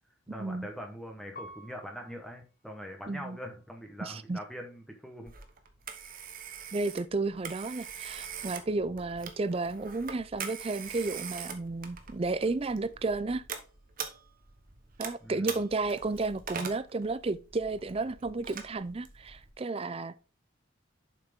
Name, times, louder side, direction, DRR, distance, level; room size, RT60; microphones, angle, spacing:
voice 1, 0.3-5.3 15.2-15.6, equal, ahead, 1.0 m, -43 dB
Piano, 1.4-4.1 4.7-5.4, left 1 dB, 45° left, 0.9 m, -53 dB
voice 2, 3.1-3.4 4.0-4.4 6.7-13.4 15.0-20.2, right 3 dB, 30° right, 0.4 m, -32 dB
Telephone, 5.3-19.5, right 7 dB, 45° right, 1.1 m, -43 dB
7.3 x 5.7 x 3.6 m
head